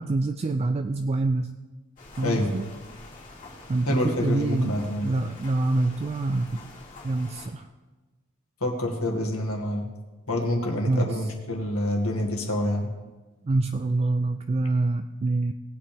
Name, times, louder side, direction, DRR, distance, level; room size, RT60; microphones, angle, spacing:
voice 1, 0.0-1.6 2.2-2.6 3.7-6.7 7.0-7.7 10.9-11.3 13.4-15.5, right 2 dB, 25° right, 8 dB, 0.3 m, -26 dB
sound 1, 2.0-7.5, left 2 dB, 35° left, 2.7 m, -46 dB
voice 2, 2.2-2.5 3.9-5.2 8.6-9.9 10.3-12.9, left 1 dB, 65° left, 1 dB, 2.0 m, -27 dB
18.5 x 8.6 x 3.5 m, 1.2 s
head